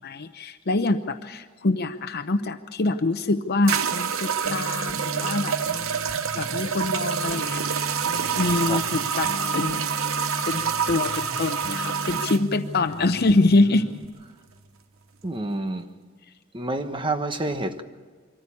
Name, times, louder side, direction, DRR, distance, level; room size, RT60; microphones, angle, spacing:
voice 1, 0.0-5.6 6.3-7.6 8.3-9.9 10.4-13.9, left 2 dB, 50° left, 0.8 m, -25 dB
sound 1, 2.9-3.0 3.7-12.4, right 7 dB, 85° right, 0.9 m, -27 dB
sound 2, 4.4-14.0, left 1 dB, 65° left, 1.8 m, -37 dB
voice 2, 15.2-15.9 16.5-17.8, right 2 dB, 25° right, 1.2 m, -28 dB
24.5 x 14.5 x 8.5 m
head